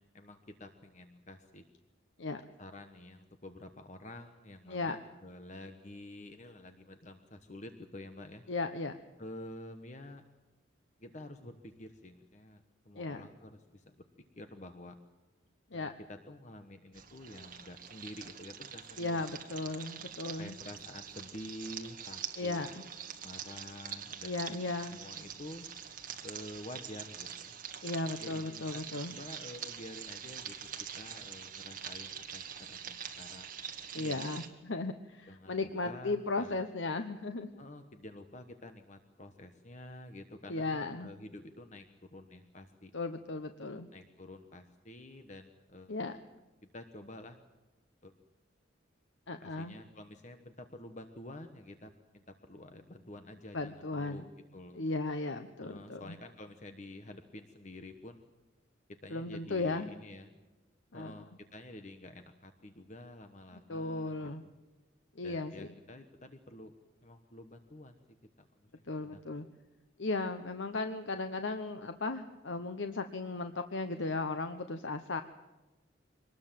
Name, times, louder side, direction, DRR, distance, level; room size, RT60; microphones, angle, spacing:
voice 1, 0.0-1.6 2.6-8.4 9.2-10.2 11.0-13.9 14.4-15.0 15.7-19.2 20.4-22.7 23.2-24.4 24.9-25.7 26.2-27.5 28.2-30.7 31.0-33.5 33.9-34.2 35.3-36.6 37.6-42.9 43.9-46.0 46.7-47.4 48.0-48.1 49.4-54.9 55.6-58.3 59.0-60.3 60.9-64.5 65.2-66.7 67.0-69.2, left 1 dB, 35° left, 7 dB, 1.2 m, -49 dB
voice 2, 8.5-9.0 13.0-13.2 15.7-15.9 19.0-20.5 22.4-22.8 24.2-25.0 27.8-29.1 33.9-37.5 40.5-41.1 42.9-43.9 45.9-46.1 49.3-49.7 53.5-54.2 54.7-56.0 59.1-59.9 60.9-61.2 63.7-64.4 65.2-65.7 68.9-69.4 70.0-75.2, left 3 dB, 70° left, 8 dB, 1.0 m, -36 dB
sound 1, 16.9-34.5, right 8 dB, 45° right, 2.0 m, -45 dB
24.5 x 20.0 x 7.6 m, 1.1 s
head